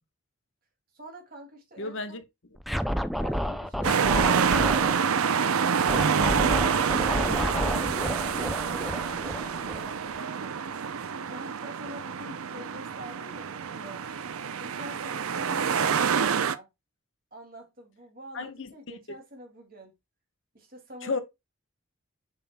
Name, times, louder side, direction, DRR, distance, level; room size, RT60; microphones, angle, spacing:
voice 1, 0.9-2.2 7.5-10.8 11.2-14.0 14.4-16.7 17.3-19.9 20.5-21.2, right 1 dB, 40° right, 2.5 m, -46 dB
voice 2, 1.8-2.2 18.3-18.7 21.0-21.2, left 3 dB, 60° left, 1.1 m, -32 dB
Scratching (performance technique), 2.6-4.9 5.9-10.2, equal, ahead, 0.3 m, -30 dB
sound 1, 3.8-16.5, right 6 dB, 85° right, 0.6 m, -27 dB
7.4 x 5.6 x 2.2 m
head